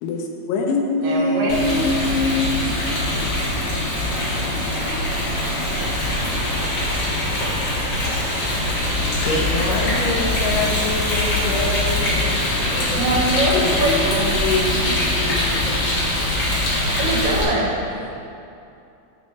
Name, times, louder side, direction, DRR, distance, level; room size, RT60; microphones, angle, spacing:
voice 1, 0.0-2.5 13.5-15.0 15.2-15.9, left 3 dB, 85° left, 1 dB, 2.8 m, -24 dB
voice 2, 1.0-1.9 2.8-2.9 13.0-14.2 17.0-17.7, right 2 dB, 75° right, -3 dB, 2.9 m, -22 dB
Rain, 1.5-17.4, left 1 dB, 50° left, 1.9 m, -22 dB
voice 3, 8.8-13.2 17.9-18.1, left 2 dB, 70° left, -3 dB, 2.4 m, -27 dB
sound 1, 10.3-12.7 13.1-15.4, right 1 dB, 60° right, 3.4 m, -40 dB
13.0 x 4.4 x 3.3 m, 2.7 s
omnidirectional pair, 4.6 m